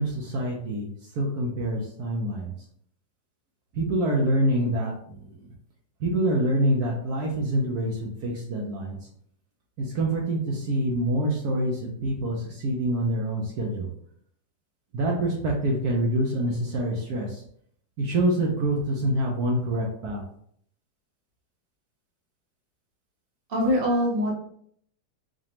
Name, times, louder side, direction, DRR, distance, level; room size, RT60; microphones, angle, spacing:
voice 1, 0.0-2.5 3.7-5.3 6.0-9.0 9.8-13.9 14.9-17.4 18.0-20.2, right 1 dB, 65° right, -1 dB, 1.1 m, -26 dB
voice 2, 23.5-24.3, equal, 40° right, -2 dB, 0.9 m, -23 dB
4.9 x 2.3 x 2.9 m, 0.64 s
omnidirectional pair, 1.9 m